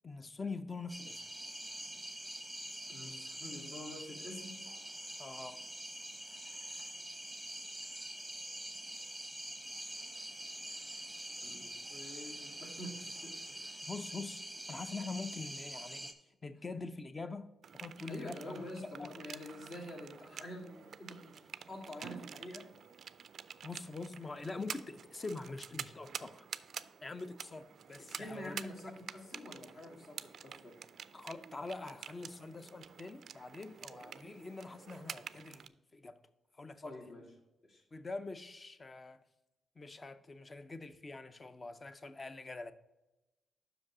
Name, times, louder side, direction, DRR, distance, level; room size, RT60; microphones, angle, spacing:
voice 1, 0.0-1.2 5.2-5.6 13.8-14.4 14.7-16.1 16.4-19.1 23.6-26.5 27.0-28.5 31.1-36.2 36.6-36.8 37.9-39.2 39.8-42.7, left 3 dB, 25° left, 0.5 m, -44 dB
sound 1, 0.9-16.1, right 1 dB, ahead, 0.9 m, -45 dB
voice 2, 2.9-4.5 6.3-7.0 7.8-8.0 11.4-13.6 18.1-22.7 28.0-30.8 36.8-37.4 37.6-37.8, left 1 dB, 55° left, 2.0 m, -47 dB
sound 2, 17.6-35.7, right 7 dB, 60° right, 0.3 m, -49 dB
6.0 x 5.2 x 6.1 m
cardioid pair, 110°, 0 cm